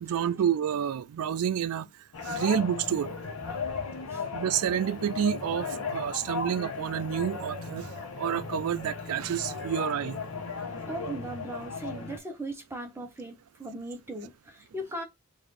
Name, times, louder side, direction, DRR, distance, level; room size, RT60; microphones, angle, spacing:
voice 1, 0.0-1.9 2.2-3.1 4.3-7.9 8.2-10.2, right 9 dB, 90° right, 0.4 m, -29 dB
sound 1, 2.1-12.2, left 4 dB, 85° left, 1.0 m, -36 dB
voice 2, 10.9-15.0, right 1 dB, 10° right, 0.9 m, -38 dB
3.9 x 2.6 x 3.2 m
head